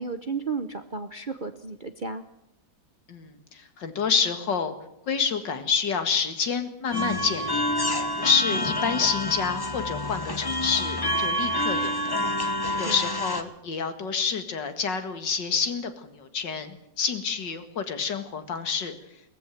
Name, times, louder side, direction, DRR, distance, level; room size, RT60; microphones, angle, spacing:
voice 1, 0.0-2.2 12.9-13.0, right 4 dB, 40° right, 9 dB, 0.7 m, -33 dB
voice 2, 3.1-4.7 5.1-7.6 8.2-12.2 12.8-19.0, left 6 dB, 70° left, 9 dB, 2.5 m, -28 dB
sound 1, 6.9-13.4, left 1 dB, 15° left, 0.9 m, -27 dB
19.5 x 14.5 x 9.2 m, 0.82 s
omnidirectional pair, 2.0 m